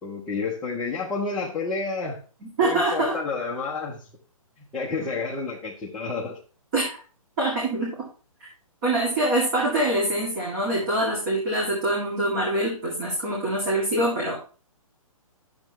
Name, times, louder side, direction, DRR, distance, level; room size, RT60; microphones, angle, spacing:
voice 1, 0.0-2.2 2.6-4.1 4.6-6.4, left 4 dB, 5° left, -6 dB, 0.3 m, -30 dB
voice 2, 2.4-3.2 6.7-7.0 7.4-8.0 8.8-14.4, right 1 dB, 35° right, -3 dB, 2.1 m, -24 dB
10.0 x 7.1 x 2.9 m, 0.38 s
hypercardioid pair, 160°, 19 cm